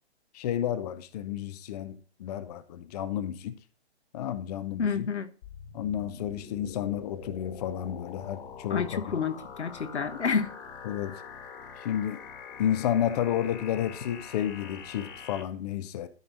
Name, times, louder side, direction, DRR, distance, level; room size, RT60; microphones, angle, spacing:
voice 1, 0.3-3.5 4.1-5.1 5.7-9.0 10.8-11.2 11.8-12.2 12.6-16.1, left 10 dB, 35° left, 0.7 m, -31 dB
voice 2, 4.8-5.3 8.7-10.5, left 6 dB, 85° left, 1.3 m, -29 dB
sound 1, 5.4-15.4, left 6 dB, 55° left, 2.4 m, -44 dB
13.0 x 4.7 x 3.9 m
hypercardioid pair, 135°, 33 cm